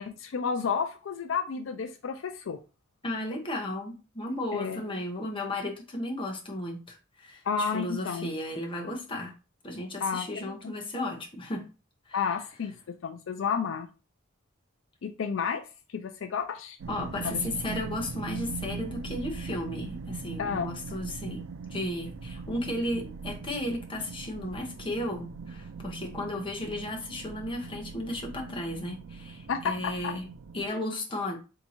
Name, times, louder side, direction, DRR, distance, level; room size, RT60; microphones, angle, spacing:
voice 1, 0.0-2.6 4.5-4.8 7.5-8.3 10.0-10.5 12.1-12.7 13.0-13.9 15.0-15.7 15.9-16.8 17.2-17.4 20.4-20.7 29.5-30.1 30.7-30.8, left 6 dB, 70° left, 8 dB, 0.4 m, -31 dB
voice 2, 3.0-9.3 9.6-11.7 12.1-12.2 16.9-21.4 21.7-30.3 30.5-31.4, left 1 dB, 25° left, 1 dB, 1.0 m, -34 dB
sound 1, 16.8-30.7, right 5 dB, 90° right, 0.4 m, -40 dB
3.5 x 2.8 x 4.2 m, 0.32 s
head